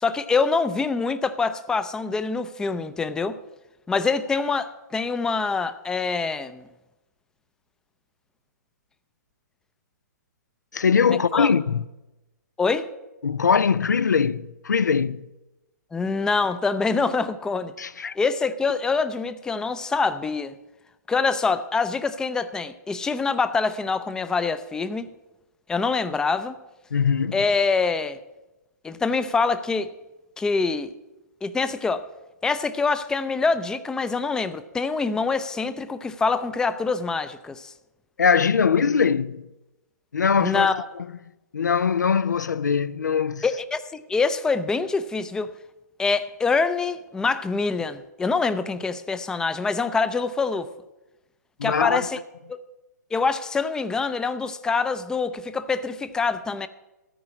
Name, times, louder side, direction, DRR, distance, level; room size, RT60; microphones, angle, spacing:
voice 1, 0.0-3.4 3.9-6.6 11.1-11.5 12.6-12.9 15.9-17.7 18.2-20.6 21.1-25.1 25.7-26.5 27.3-28.2 28.8-29.9 30.4-30.9 31.4-32.1 32.4-37.7 40.4-40.8 43.4-45.5 46.0-50.7 51.6-52.2 53.1-56.7, left 4 dB, 5° left, 0.4 m, -25 dB
voice 2, 10.7-11.8 13.2-15.2 17.8-18.1 26.9-27.4 38.2-39.4 40.1-40.7 41.5-43.4 51.6-52.1, left 6 dB, 80° left, 0.4 m, -21 dB
13.5 x 4.8 x 8.3 m
figure-of-eight pair, 120°, 10 cm